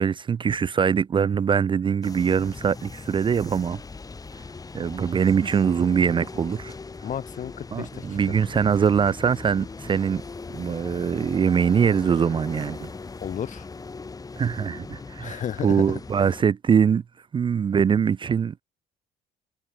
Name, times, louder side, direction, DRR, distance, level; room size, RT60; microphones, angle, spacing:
voice 1, 0.0-3.8 4.7-6.7 7.7-10.2 10.5-12.9 14.4-17.0 17.3-18.6, right 7 dB, 30° right, 0.5 m, -23 dB
sound 1, 2.0-16.4, left 4 dB, 20° left, 2.1 m, -40 dB
voice 2, 7.0-8.4 13.2-13.7 15.2-16.0, left 9 dB, 50° left, 2.3 m, -33 dB
cardioid pair, 110°, 17 cm